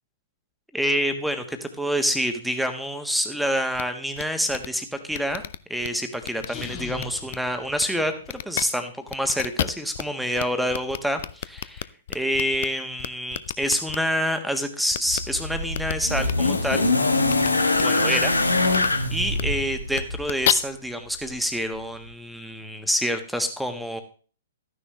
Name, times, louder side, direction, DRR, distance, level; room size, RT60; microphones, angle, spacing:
voice 1, 0.7-5.4 5.7-11.9 12.1-16.9 17.8-24.0, equal, ahead, 7 dB, 1.4 m, -27 dB
sound 1, 3.7-3.8 4.2-4.3 4.5-4.7 5.1-5.9 6.2-6.7 7.0-7.4 7.8-7.9 8.2-8.6 9.1-10.0 10.4-10.5 10.7-12.7 13.0-14.0 14.9-15.2 15.7-15.9 16.2-16.3 17.3-17.5 17.7-17.8 18.7-18.9 19.3-19.4 19.9-20.5, left 12 dB, 50° left, 0.5 m, -29 dB
sound 2, 6.4-8.5, left 5 dB, 30° left, 1.9 m, -39 dB
sound 3, 15.1-20.3 21.3-21.4, left 2 dB, 85° left, 1.6 m, -23 dB
13.5 x 10.0 x 3.3 m, 0.39 s
figure-of-eight pair, 115°, 0 cm